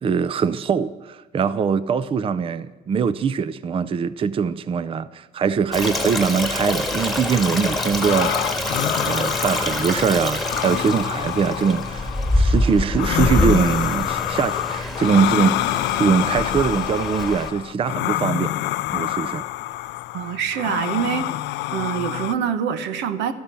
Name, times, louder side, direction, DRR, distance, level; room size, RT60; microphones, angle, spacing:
voice 1, 0.0-8.3 9.0-12.1 12.3-15.6 16.0-18.5 18.9-19.4, right 6 dB, 30° right, 0.5 m, -22 dB
sound 1, 5.4-15.1, right 1 dB, 50° right, 3.7 m, -48 dB
Stream, 5.7-17.5, left 1 dB, ahead, 1.8 m, -26 dB
sound 2, 7.3-22.3, left 16 dB, 80° left, 0.4 m, -27 dB
voice 2, 20.1-21.3 21.7-23.3, right 8 dB, 90° right, 1.2 m, -25 dB
13.0 x 11.5 x 6.9 m
cardioid pair, 110°, 18 cm